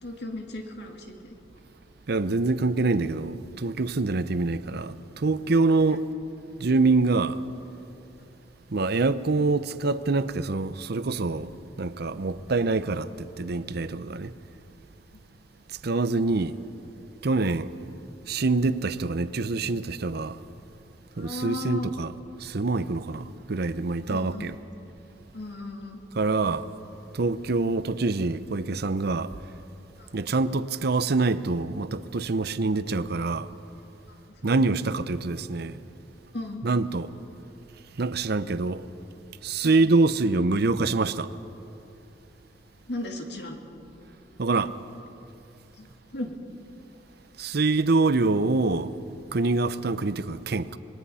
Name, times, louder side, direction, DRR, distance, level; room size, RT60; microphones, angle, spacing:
voice 1, 0.0-1.4 4.3-4.4 15.1-15.2 21.1-21.9 24.1-24.5 25.3-26.0 30.0-30.1 32.5-32.7 34.4-34.6 36.3-36.6 39.6-39.9 42.9-43.6 45.8-46.3, left 1 dB, 65° left, 2.4 m, -36 dB
voice 2, 2.1-6.1 6.6-7.4 8.7-14.3 15.7-16.6 17.2-17.7 18.3-20.4 21.2-22.1 22.4-24.6 26.1-26.7 27.1-29.3 30.1-33.5 34.4-35.8 36.6-37.1 38.0-38.8 39.4-41.3 44.4-44.7 47.4-48.9 49.3-50.8, right 3 dB, 60° right, 0.7 m, -25 dB
26.0 x 20.5 x 5.7 m
head